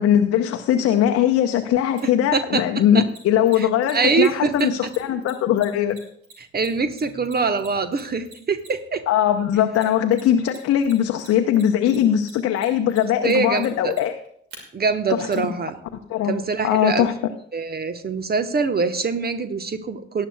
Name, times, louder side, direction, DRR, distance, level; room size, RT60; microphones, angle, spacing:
voice 1, 0.0-6.0 9.1-14.1 15.2-15.3 16.1-16.3 16.6-17.1, left 10 dB, 50° left, 5 dB, 0.8 m, -20 dB
voice 2, 2.0-2.6 2.9-3.0 3.6-4.7 6.4-9.0 13.2-13.9 14.7-15.8 16.2-17.1 17.5-20.3, right 4 dB, 30° right, 10 dB, 1.2 m, -24 dB
Mechanisms, 2.0-2.1 3.1-9.0 9.7-10.6 10.8-14.6 15.3-15.4, right 3 dB, 70° right, 2.5 m, -45 dB
18.5 x 10.5 x 2.4 m, 0.63 s
figure-of-eight pair, 45°, 31 cm